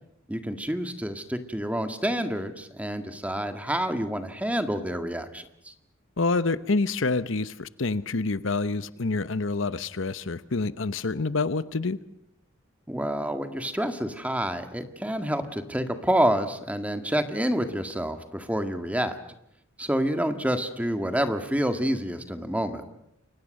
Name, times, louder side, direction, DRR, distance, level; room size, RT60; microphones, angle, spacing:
voice 1, 0.3-5.7 12.9-19.2 19.8-22.9, equal, 5° right, 8 dB, 1.8 m, -28 dB
voice 2, 6.2-12.0, left 3 dB, 65° left, 14 dB, 0.9 m, -27 dB
29.5 x 24.0 x 6.5 m, 0.77 s
head